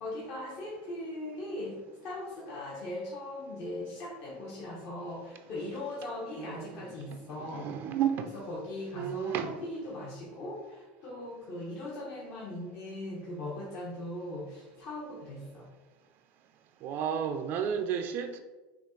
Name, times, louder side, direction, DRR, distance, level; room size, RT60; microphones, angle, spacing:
voice 1, 0.0-7.7 8.3-15.7, left 1 dB, 55° left, 1.1 m, -39 dB
voice 2, 6.4-6.9 7.4-8.3 8.9-9.6 16.8-18.4, right 8 dB, 50° right, 0.4 m, -32 dB
5.8 x 2.4 x 3.8 m
supercardioid pair, 125°, 5 cm